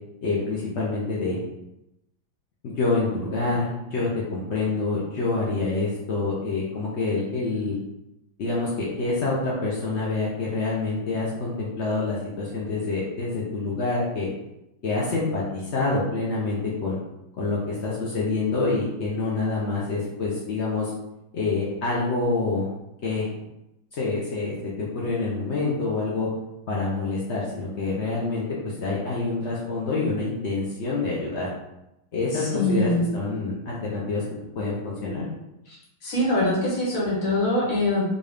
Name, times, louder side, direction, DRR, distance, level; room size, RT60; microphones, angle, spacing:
voice 1, 0.2-1.4 2.6-7.8 8.4-14.3 14.8-17.0 17.4-20.9 21.3-22.7 23.0-23.3 23.9-26.3 26.7-31.5 32.1-34.2 34.5-35.2, left 3 dB, 80° left, -5 dB, 0.6 m, -27 dB
voice 2, 32.3-33.1 36.0-38.1, left 1 dB, 50° left, -4 dB, 1.3 m, -23 dB
4.0 x 2.4 x 3.4 m, 0.88 s
omnidirectional pair, 2.1 m